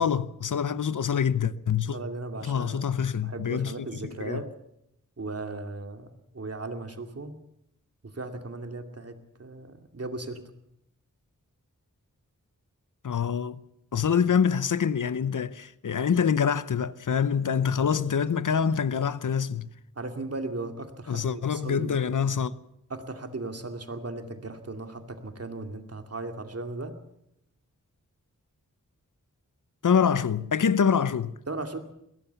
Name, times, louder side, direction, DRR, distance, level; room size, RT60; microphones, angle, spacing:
voice 1, 0.0-2.0 2.4-4.4 13.0-13.6 13.9-19.7 21.1-22.6 29.8-31.4, left 7 dB, 75° left, 0.8 m, -25 dB
voice 2, 1.9-2.9 3.2-4.5 5.2-6.1 6.3-7.4 8.1-10.4 17.7-18.3 20.0-22.0 22.9-27.0 31.5-31.8, right 2 dB, 50° right, 2.4 m, -37 dB
21.5 x 18.0 x 7.0 m
wide cardioid pair, 80°, 31 cm